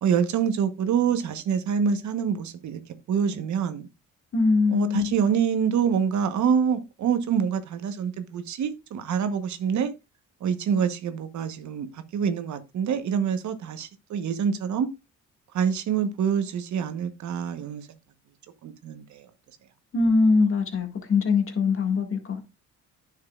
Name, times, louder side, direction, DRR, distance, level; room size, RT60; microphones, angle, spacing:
voice 1, 0.0-2.8 3.1-3.8 4.7-9.9 10.4-14.9 15.5-18.0 18.6-19.2, right 7 dB, 70° right, 1.1 m, -26 dB
voice 2, 4.3-5.1 19.9-22.4, left 4 dB, 45° left, 1.9 m, -22 dB
9.8 x 6.5 x 2.4 m
cardioid pair, 90°, 30 cm